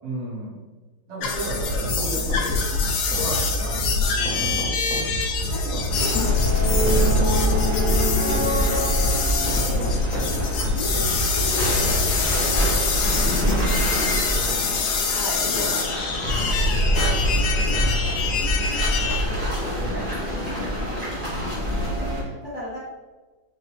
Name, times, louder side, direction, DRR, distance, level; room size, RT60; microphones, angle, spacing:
voice 1, 0.0-0.6 1.1-2.6 3.1-4.8 14.3-14.8 17.8-18.0, right 2 dB, 55° right, -10 dB, 2.3 m, -33 dB
sound 1, 1.2-19.2, left 5 dB, 90° left, 1.3 m, -26 dB
sound 2, 1.7-12.1, right 2 dB, 80° right, 3.1 m, -29 dB
voice 2, 4.5-14.1 15.0-17.8 18.2-22.8, left 1 dB, 60° left, -10 dB, 0.7 m, -39 dB
sound 3, 5.9-22.2, equal, 40° right, 0.5 m, -24 dB
5.9 x 2.6 x 3.0 m, 1.3 s
omnidirectional pair, 3.3 m